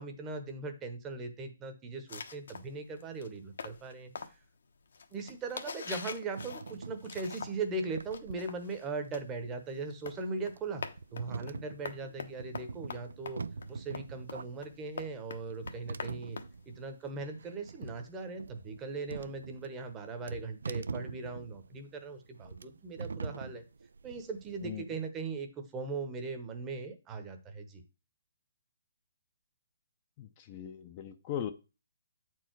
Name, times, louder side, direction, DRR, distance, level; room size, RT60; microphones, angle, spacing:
voice 1, 0.0-4.4 5.1-10.8 11.1-13.4 13.7-16.4 16.7-23.6 24.0-27.8, right 3 dB, 15° right, 0.9 m, -39 dB
sound 1, 2.1-7.7 8.0-17.1, left 5 dB, 70° left, 1.1 m, -45 dB
sound 2, 6.4-24.7, right 4 dB, 90° right, 0.4 m, -44 dB
voice 2, 30.2-31.5, left 10 dB, 25° left, 0.6 m, -39 dB
8.5 x 4.6 x 4.5 m
hypercardioid pair, 165°, 0 cm